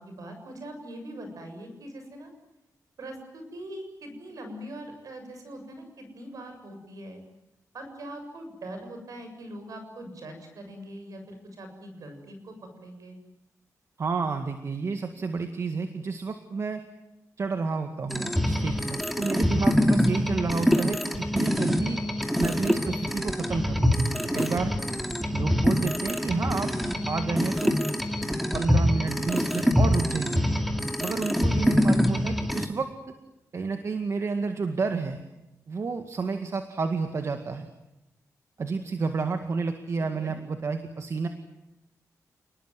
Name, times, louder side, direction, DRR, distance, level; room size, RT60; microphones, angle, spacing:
voice 1, 0.0-2.3 3.0-7.2 7.7-13.2 40.0-40.4, right 1 dB, 75° right, 6 dB, 7.5 m, -42 dB
voice 2, 14.0-16.8 17.4-22.0 22.4-23.9 24.3-24.7 25.3-26.7 27.0-27.7 28.5-30.4 31.0-33.1 33.5-35.2 35.7-37.7 38.6-41.3, right 4 dB, 50° right, 6 dB, 2.0 m, -30 dB
sound 1, 18.1-32.7, equal, ahead, 2.5 m, -25 dB
29.5 x 20.5 x 9.5 m, 0.94 s
wide cardioid pair, 130°, 6 cm